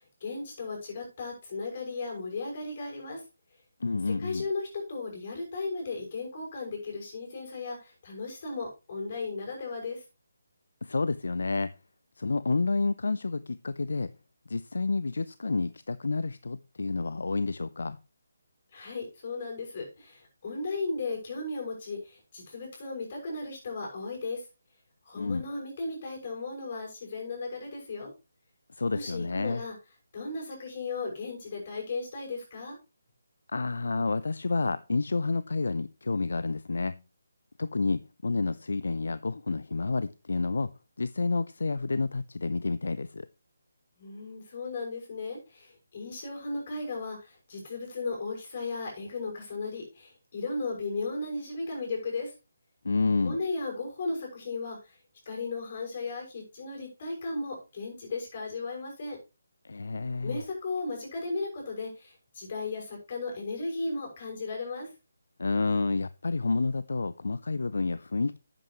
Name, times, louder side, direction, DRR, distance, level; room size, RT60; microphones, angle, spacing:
voice 1, 0.2-3.2 4.1-10.0 18.7-24.4 25.1-28.1 28.9-29.8 30.1-32.8 44.0-52.3 53.2-54.9 55.3-59.2 60.2-64.9, left 3 dB, 45° left, 6.1 m, -36 dB
voice 2, 3.8-4.5 10.8-11.7 12.2-14.1 14.5-18.0 25.2-25.4 28.7-29.6 33.5-37.0 37.6-43.3 52.8-53.4 59.6-60.4 65.4-68.4, left 3 dB, 70° left, 0.5 m, -29 dB
11.0 x 9.0 x 3.0 m
figure-of-eight pair, 150°, 0 cm